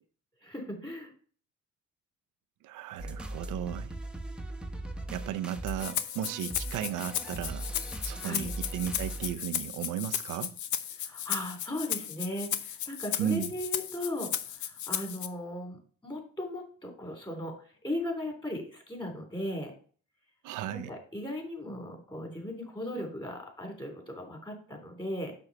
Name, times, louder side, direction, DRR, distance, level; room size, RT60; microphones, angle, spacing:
voice 1, 0.4-1.1 8.2-8.5 11.0-17.6 17.8-19.7 20.7-25.3, left 1 dB, 15° left, 3.4 m, -37 dB
voice 2, 2.6-3.9 5.1-7.7 8.0-10.6 13.2-13.5 20.4-20.9, right 11 dB, 85° right, 0.6 m, -35 dB
sound 1, 3.0-9.4, right 1 dB, 5° right, 1.0 m, -39 dB
Rattle (instrument), 5.7-15.3, left 10 dB, 70° left, 0.7 m, -35 dB
6.8 x 6.2 x 4.2 m
cardioid pair, 90°, 30 cm